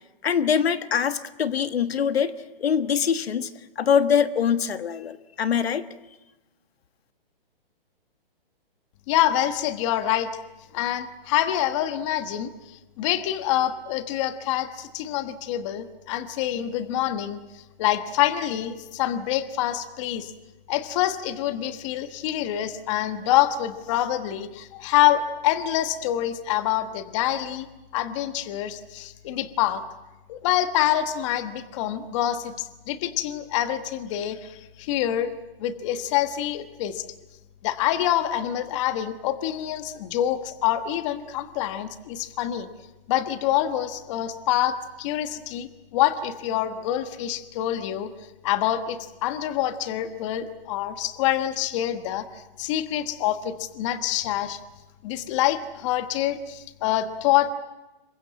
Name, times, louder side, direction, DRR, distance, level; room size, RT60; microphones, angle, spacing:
voice 1, 0.2-2.3 2.6-3.5 3.8-5.8, left 7 dB, 80° left, 11 dB, 1.4 m, -23 dB
voice 2, 9.1-10.3 10.7-20.3 20.7-27.7 27.9-29.8 30.3-35.3 35.6-37.0 37.6-42.7 43.1-48.1 48.4-54.6 55.0-57.5, left 12 dB, 30° left, 10 dB, 1.3 m, -26 dB
27.0 x 23.0 x 7.6 m, 1.0 s
hypercardioid pair, 155°, 30 cm